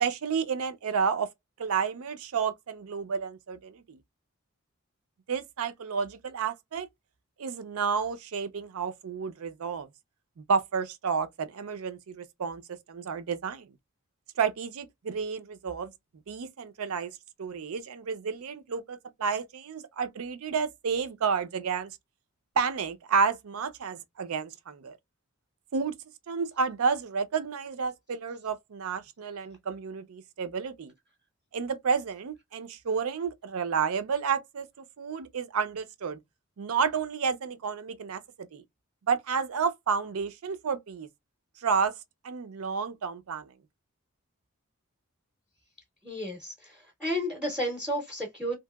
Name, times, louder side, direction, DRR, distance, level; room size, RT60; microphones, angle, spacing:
voice 1, 0.0-1.3 1.6-4.0 5.3-6.9 7.4-9.9 10.4-13.7 14.4-15.9 16.3-17.1 17.4-21.9 22.6-25.0 25.7-25.9 26.3-30.9 31.5-36.2 36.6-38.6 39.1-41.1 41.6-41.9 42.2-43.5, right 6 dB, 75° right, 0.5 m, -31 dB
voice 2, 46.0-48.5, equal, 5° right, 0.6 m, -32 dB
2.8 x 2.5 x 2.2 m
head